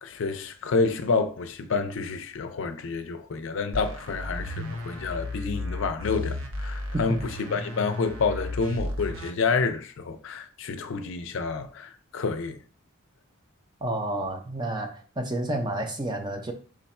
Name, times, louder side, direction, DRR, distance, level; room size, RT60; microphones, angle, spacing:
voice 1, 0.0-12.6, left 4 dB, 65° left, 0.5 m, -29 dB
sound 1, 3.7-9.3, left 1 dB, 70° right, 0.7 m, -34 dB
voice 2, 13.8-16.5, right 1 dB, 20° right, 0.5 m, -30 dB
4.9 x 2.3 x 4.1 m
head